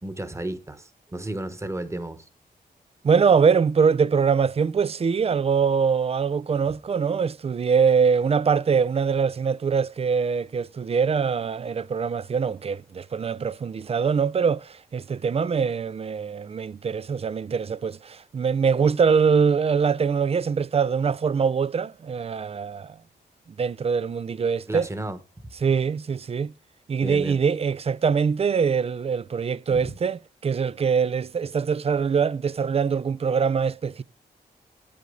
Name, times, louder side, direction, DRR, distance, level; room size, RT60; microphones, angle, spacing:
voice 1, 0.0-2.2 24.7-25.2 27.0-27.4 29.7-29.9, right 1 dB, 15° right, 1.2 m, -33 dB
voice 2, 3.0-23.0 23.6-24.9 25.6-26.5 26.9-34.0, right 6 dB, 35° right, 0.4 m, -23 dB
9.3 x 8.5 x 3.8 m
cardioid pair, 90°, 17 cm